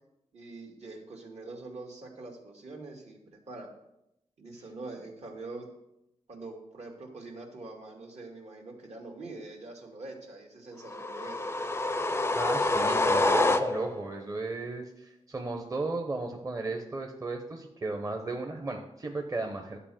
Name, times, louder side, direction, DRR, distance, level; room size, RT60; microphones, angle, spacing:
voice 1, 0.3-3.2 3.5-3.7 4.4-5.7 6.3-11.5, right 2 dB, 65° right, 1 dB, 2.1 m, -44 dB
sound 1, 10.9-14.1, left 2 dB, 20° left, 0.5 m, -27 dB
voice 2, 12.1-19.8, right 2 dB, 30° right, 2 dB, 0.9 m, -35 dB
11.5 x 4.4 x 7.6 m, 0.85 s
wide cardioid pair, 115°, 12 cm